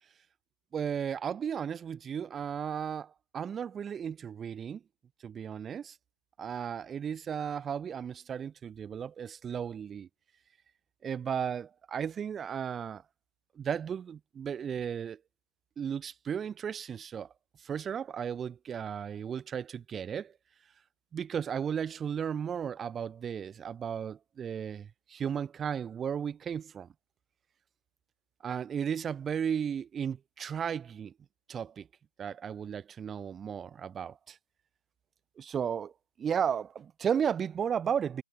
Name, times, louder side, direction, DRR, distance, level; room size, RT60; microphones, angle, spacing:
voice 1, 0.7-4.8 5.2-5.9 6.4-10.1 11.0-13.0 13.6-15.2 15.8-17.3 17.6-20.3 21.1-26.9 28.4-31.1 31.5-31.9 32.2-34.4 35.4-35.9 36.2-38.2, right 8 dB, 10° right, 0.8 m, -34 dB
figure-of-eight pair, 155°, 0 cm